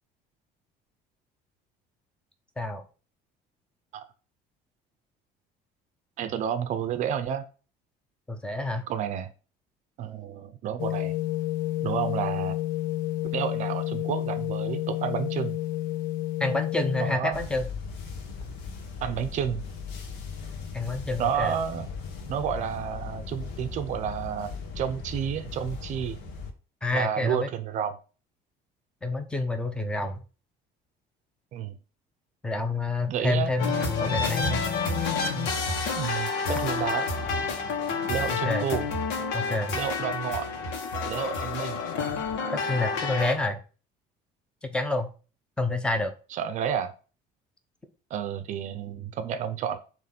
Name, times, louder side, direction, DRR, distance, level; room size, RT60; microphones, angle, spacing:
voice 1, 6.2-7.4 8.9-9.3 10.0-11.1 11.8-12.6 13.3-15.5 17.0-17.4 19.0-19.6 21.2-21.9 22.3-26.2 26.9-27.9 31.5-31.7 33.1-33.5 35.9-37.1 38.1-38.9 39.7-40.5 41.1-41.8 46.3-46.9 48.1-49.8, right 8 dB, 45° right, 10 dB, 0.6 m, -30 dB
voice 2, 8.3-8.9 16.4-17.7 20.7-21.5 26.8-27.5 29.0-30.2 32.4-33.7 34.0-34.6 38.3-38.7 39.3-39.8 42.5-43.6 44.6-45.1 45.6-46.1, left 2 dB, 5° left, 7 dB, 0.7 m, -28 dB
sound 1, 10.8-17.2, left 14 dB, 50° left, 0.4 m, -30 dB
sound 2, 17.3-26.5, left 5 dB, 70° left, 1.4 m, -38 dB
sound 3, 33.6-43.3, left 4 dB, 85° left, 1.7 m, -29 dB
7.6 x 3.2 x 5.9 m, 0.36 s
cardioid pair, 180°, 18 cm